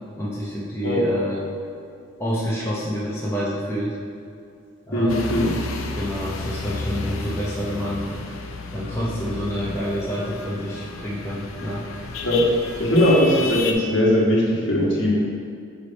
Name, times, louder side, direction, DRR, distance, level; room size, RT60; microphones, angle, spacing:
voice 1, 0.2-1.5 2.2-3.9 4.8-5.2 5.9-8.1 8.7-11.9, equal, 10° left, -7 dB, 0.8 m, -28 dB
voice 2, 4.9-5.5 12.2-12.5 12.8-15.1, equal, 60° left, -4 dB, 1.4 m, -19 dB
sound 1, 5.1-13.7, left 3 dB, 75° left, 0.6 m, -32 dB
8.8 x 3.5 x 4.1 m, 2.4 s
head